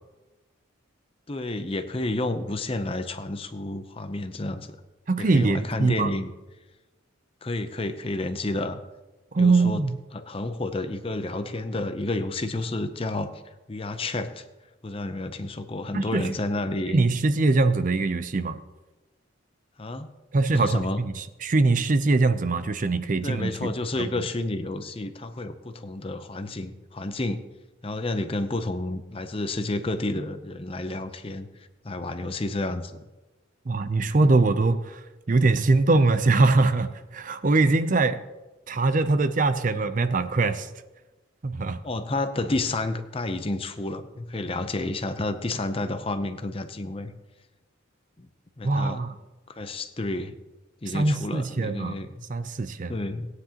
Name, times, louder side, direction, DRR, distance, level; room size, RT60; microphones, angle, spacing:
voice 1, 1.3-4.8 5.2-6.3 7.4-8.8 9.4-9.8 10.1-13.3 13.7-14.4 14.8-17.0 19.8-20.1 20.5-21.0 23.2-27.4 27.8-31.5 31.8-33.0 41.8-47.1 48.2-48.3 48.6-49.0 49.6-50.3 50.8-52.2 52.9-53.3, left 2 dB, 25° left, 9 dB, 0.6 m, -30 dB
voice 2, 5.1-6.1 9.3-10.0 15.9-16.3 16.9-18.6 20.3-24.1 33.7-35.0 35.3-38.2 38.7-40.7 41.4-41.8 48.6-49.1 50.9-52.0 52.3-53.0, right 3 dB, 40° right, 11 dB, 0.5 m, -22 dB
18.0 x 9.7 x 2.9 m, 1.1 s
head